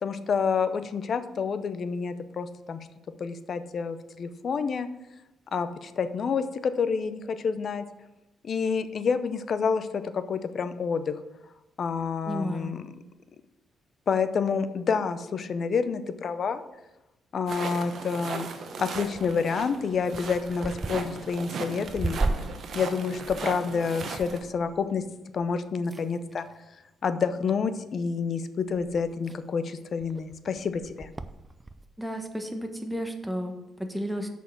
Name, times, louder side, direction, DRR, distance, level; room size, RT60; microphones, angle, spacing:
voice 1, 0.0-2.8 3.2-4.9 5.5-7.8 8.4-11.2 11.8-12.9 14.1-16.6 17.3-18.5 18.8-22.2 22.7-25.0 25.3-26.5 27.0-31.1, left 5 dB, 50° left, 11 dB, 0.6 m, -28 dB
voice 2, 12.3-12.7 32.0-34.3, equal, ahead, 5 dB, 1.1 m, -33 dB
sound 1, 17.5-24.4, right 5 dB, 55° right, 0.9 m, -37 dB
sound 2, 18.7-25.5 25.9-26.6 27.4-27.8 28.3-28.4 28.7-31.9, right 2 dB, 20° right, 0.4 m, -37 dB
6.4 x 5.4 x 6.2 m, 0.95 s
cardioid pair, 105°, 0 cm